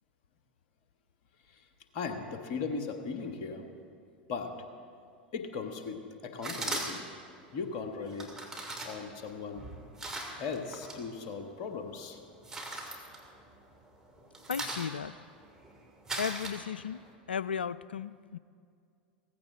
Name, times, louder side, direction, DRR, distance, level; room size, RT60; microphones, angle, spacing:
voice 1, 1.9-3.6 4.3-4.5 5.3-7.0 7.5-8.3 8.8-9.7 10.4-12.2, left 5 dB, 50° left, 5 dB, 1.6 m, -38 dB
sound 1, 6.4-7.2 8.1-11.0 11.4-11.9 12.2-13.8 14.1-17.1, right 2 dB, 10° right, 2.6 m, -39 dB
voice 2, 14.5-15.1 16.2-17.0 17.3-18.4, left 7 dB, 80° left, 18 dB, 0.3 m, -35 dB
17.0 x 15.5 x 3.8 m, 2.3 s
figure-of-eight pair, 85°, 5 cm